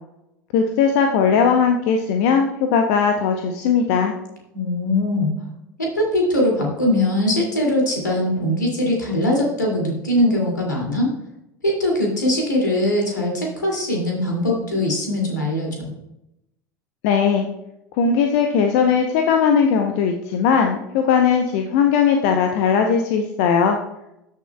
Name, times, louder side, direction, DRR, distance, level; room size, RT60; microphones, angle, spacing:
voice 1, 0.5-4.1 17.0-17.5 18.0-23.8, left 6 dB, 55° left, 4 dB, 0.8 m, -18 dB
voice 2, 4.5-5.3 5.8-11.1 11.6-15.9, left 1 dB, 80° left, -1 dB, 2.5 m, -21 dB
13.0 x 6.6 x 2.3 m, 0.84 s
figure-of-eight pair, 75°, 10 cm